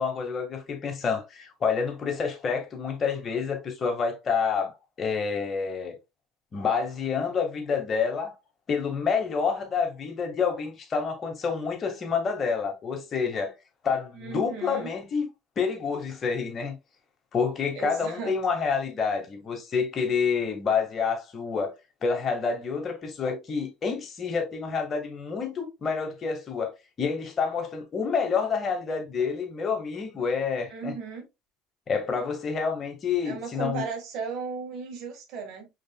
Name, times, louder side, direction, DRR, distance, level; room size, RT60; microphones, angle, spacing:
voice 1, 0.0-5.9 6.5-8.3 8.7-13.5 13.8-15.3 15.5-16.8 17.3-21.8 22.0-30.9 31.9-33.9, left 5 dB, 40° left, 1.7 m, -28 dB
voice 2, 14.1-14.9 17.7-18.3 30.7-31.3 33.2-35.7, right 5 dB, 65° right, 1.7 m, -36 dB
5.1 x 4.1 x 2.3 m
hypercardioid pair, 80°, 0 cm